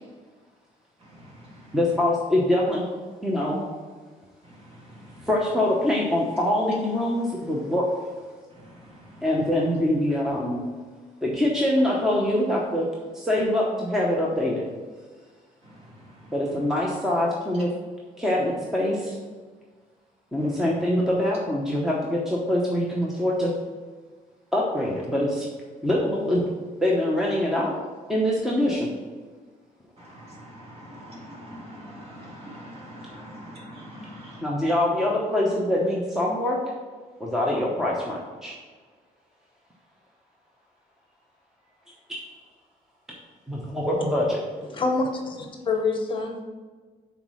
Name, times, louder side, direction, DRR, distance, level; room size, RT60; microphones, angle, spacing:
voice 1, 1.7-2.8 3.2-3.6 5.2-7.9 9.2-10.6 11.2-12.9 13.1-14.6 16.3-17.7 18.2-19.2 20.3-23.5 24.5-25.5 25.8-26.4 26.8-27.7 28.1-28.9 34.4-36.6 37.2-38.5 42.1-42.2 43.5-44.4, left 1 dB, 5° right, -3 dB, 0.8 m, -24 dB
voice 2, 30.4-34.4, equal, 45° right, -3 dB, 2.1 m, -42 dB
voice 3, 44.7-46.4, left 3 dB, 35° left, 3 dB, 0.8 m, -26 dB
5.9 x 4.1 x 6.1 m, 1.5 s
cardioid pair, 160°, 15 cm